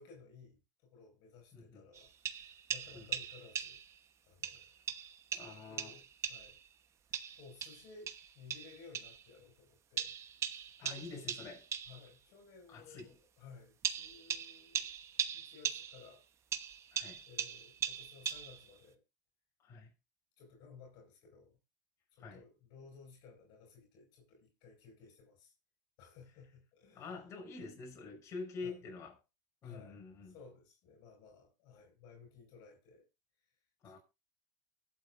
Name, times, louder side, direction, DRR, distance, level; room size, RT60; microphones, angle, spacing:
voice 1, 0.0-3.8 4.3-4.8 5.3-6.6 7.1-10.7 11.0-11.2 11.9-16.2 17.3-19.0 20.4-21.6 22.1-25.5 26.0-27.3 28.6-28.8 29.6-33.1, left 5 dB, 55° left, 5.3 m, -57 dB
voice 2, 1.5-1.8 2.9-3.1 5.3-6.0 10.8-11.7 12.7-13.2 16.9-17.2 19.6-19.9 22.2-22.4 26.9-29.1 29.6-30.4 33.8-34.0, left 4 dB, 35° left, 5.9 m, -47 dB
sound 1, 1.9-4.0 4.4-6.7 7.1-9.2 10.0-12.1 13.0-13.1 13.8-16.1 16.5-18.8, right 8 dB, 30° right, 1.1 m, -40 dB
23.5 x 7.9 x 2.6 m
supercardioid pair, 120°, 9 cm